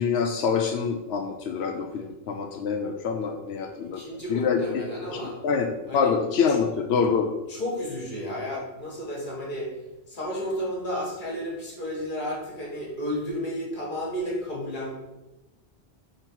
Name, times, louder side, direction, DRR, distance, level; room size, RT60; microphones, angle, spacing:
voice 1, 0.0-4.0 4.3-4.8 5.1-7.3, left 6 dB, 90° left, 3 dB, 0.9 m, -26 dB
voice 2, 3.9-5.4 5.9-6.1 7.5-9.7 10.1-14.9, equal, 50° left, -3 dB, 1.8 m, -32 dB
4.4 x 3.9 x 5.4 m, 1.0 s
omnidirectional pair, 1.1 m